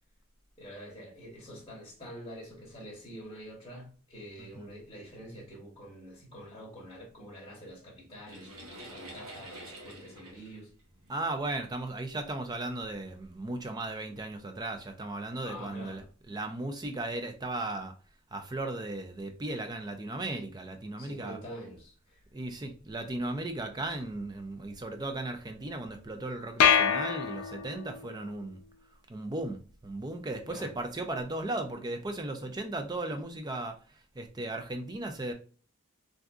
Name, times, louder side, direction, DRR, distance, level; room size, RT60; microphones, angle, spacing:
voice 1, 0.6-8.5 8.8-10.7 15.4-16.0 21.0-22.2 30.5-30.7, equal, 25° left, 1.0 m, -46 dB
voice 2, 4.4-4.7 11.1-17.9 18.3-21.4 22.3-28.6 29.1-35.3, right 2 dB, 20° right, 0.4 m, -36 dB
sound 1, 8.3-11.6 12.4-12.5 13.1-13.3, right 1 dB, 85° right, 1.1 m, -47 dB
sound 2, 26.6-28.0, left 8 dB, 85° left, 0.4 m, -25 dB
3.7 x 2.6 x 2.3 m
head